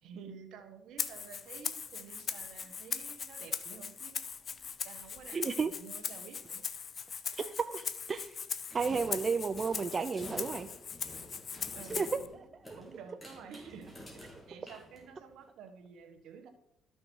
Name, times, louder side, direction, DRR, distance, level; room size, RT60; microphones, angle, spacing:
voice 1, 0.0-4.4 4.8-6.6 11.7-12.4 12.8-16.5, right 6 dB, 75° right, 7 dB, 1.5 m, -51 dB
Rattle (instrument), 1.0-12.3, left 6 dB, 45° left, 0.7 m, -40 dB
voice 2, 5.3-5.7 7.3-8.4 8.7-10.7 11.9-12.2 12.7-12.8, right 5 dB, 35° right, 10 dB, 0.5 m, -33 dB
sound 1, 8.7-15.4, equal, 10° left, 3.2 m, -51 dB
12.5 x 6.3 x 4.6 m, 0.82 s
cardioid pair, 85°, 0 cm